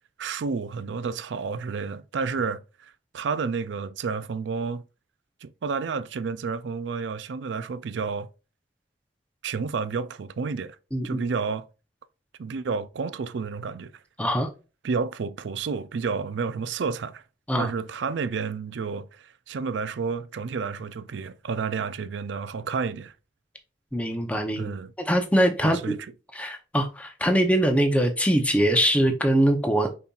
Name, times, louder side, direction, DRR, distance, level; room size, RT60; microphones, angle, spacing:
voice 1, 0.2-4.8 5.4-8.3 9.4-10.8 11.0-11.6 12.4-13.9 14.8-17.2 17.5-23.1 24.6-24.9 25.6-26.0, right 5 dB, 70° right, 0.4 m, -30 dB
voice 2, 14.2-14.5 17.5-17.7 23.9-24.7 25.1-26.0 26.3-29.9, equal, 5° left, 0.7 m, -22 dB
5.3 x 4.2 x 2.4 m
head